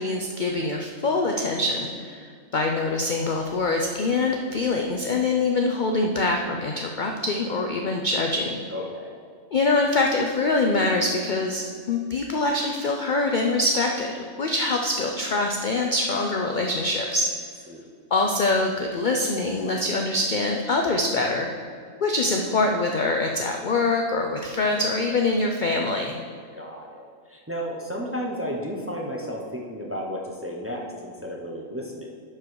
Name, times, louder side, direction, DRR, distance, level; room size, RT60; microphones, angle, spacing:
voice 1, 0.0-2.2 2.5-8.6 9.5-17.3 18.1-21.7 22.0-26.2, left 2 dB, 55° left, 2 dB, 0.5 m, -24 dB
voice 2, 8.7-9.1 17.7-17.8 26.5-32.1, equal, 10° right, -1 dB, 0.7 m, -33 dB
11.0 x 4.6 x 4.7 m, 2.1 s
omnidirectional pair, 1.5 m